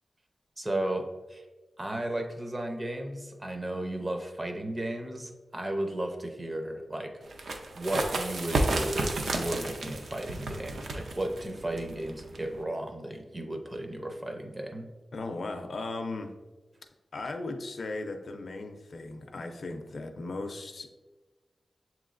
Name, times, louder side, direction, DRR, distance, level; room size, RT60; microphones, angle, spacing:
voice 1, 0.6-1.4 1.8-7.1 7.7-14.9, right 1 dB, 25° right, 4 dB, 0.5 m, -34 dB
sound 1, 7.3-12.6, right 2 dB, 80° right, 0.5 m, -32 dB
voice 2, 15.1-16.3 17.1-20.9, left 2 dB, 60° left, 6 dB, 0.4 m, -37 dB
7.1 x 3.0 x 2.4 m, 1.2 s
wide cardioid pair, 145°, 0 cm